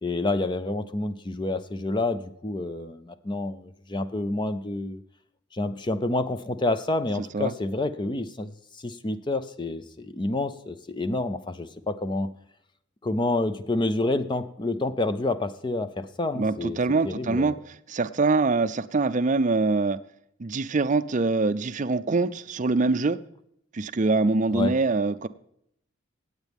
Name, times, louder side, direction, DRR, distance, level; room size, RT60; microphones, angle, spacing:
voice 1, 0.0-5.0 5.5-12.3 13.0-16.8 17.0-17.6 24.5-24.7, left 2 dB, 25° left, 11 dB, 0.5 m, -28 dB
voice 2, 7.2-7.5 16.3-20.0 20.4-23.2 23.7-25.3, right 3 dB, 40° right, 15 dB, 0.5 m, -24 dB
17.5 x 8.2 x 3.5 m, 0.73 s
head